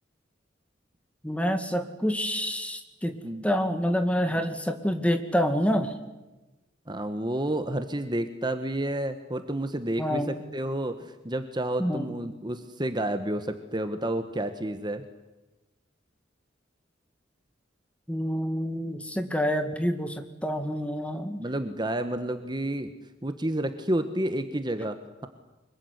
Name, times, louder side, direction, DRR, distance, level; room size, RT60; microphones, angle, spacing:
voice 1, 1.2-3.2 3.4-5.9 10.0-10.4 11.8-12.1 18.1-21.4, equal, 5° left, 7 dB, 2.1 m, -27 dB
voice 2, 6.9-15.0 21.4-22.9 23.2-25.3, right 1 dB, 25° right, 8 dB, 1.3 m, -30 dB
25.0 x 22.5 x 9.7 m, 1.1 s
head